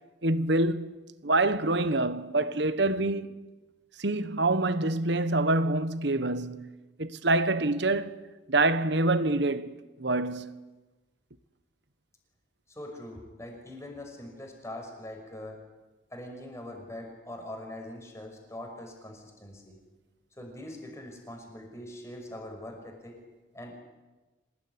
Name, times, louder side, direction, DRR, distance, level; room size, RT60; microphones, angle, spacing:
voice 1, 0.2-0.9 1.2-3.3 4.0-6.7 7.0-8.2 8.5-10.6, right 2 dB, 60° right, 1.3 m, -26 dB
voice 2, 12.7-15.6 16.1-19.8 20.4-23.2 23.5-23.7, left 1 dB, 15° left, 5.9 m, -42 dB
26.0 x 19.5 x 9.8 m
head